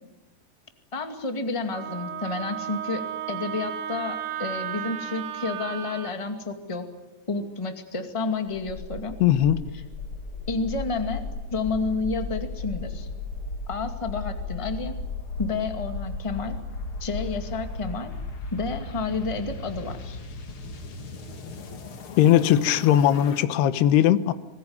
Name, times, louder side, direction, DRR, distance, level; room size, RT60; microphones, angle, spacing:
voice 1, 0.9-6.9 7.3-9.1 9.7-9.8 10.5-11.2 11.5-13.1 13.7-15.0 15.4-16.6 17.0-18.1 18.5-20.2, left 3 dB, 20° left, 6 dB, 0.9 m, -30 dB
Wind instrument woodwind instrument, 1.7-6.1, right 10 dB, 65° right, 2.2 m, -34 dB
sound 1, 8.5-23.4, left 3 dB, 45° left, 1.9 m, -36 dB
voice 2, 9.2-9.6 22.2-24.3, left 11 dB, 75° left, 13 dB, 3.1 m, -19 dB
26.5 x 20.5 x 9.6 m, 1.0 s
omnidirectional pair, 4.8 m